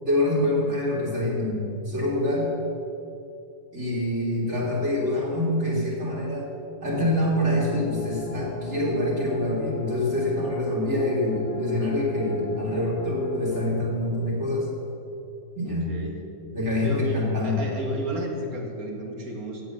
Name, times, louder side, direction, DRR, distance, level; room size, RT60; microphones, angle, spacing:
voice 1, 0.0-2.5 3.7-6.5 6.8-14.7 15.5-15.9 16.5-17.6, left 1 dB, 50° right, -5 dB, 3.7 m, -26 dB
sound 1, 6.9-13.9, left 2 dB, 50° left, 1.0 m, -34 dB
voice 2, 15.6-16.3 16.8-19.6, right 1 dB, 75° right, 1 dB, 2.5 m, -33 dB
14.0 x 9.0 x 7.3 m, 2.8 s
omnidirectional pair, 1.5 m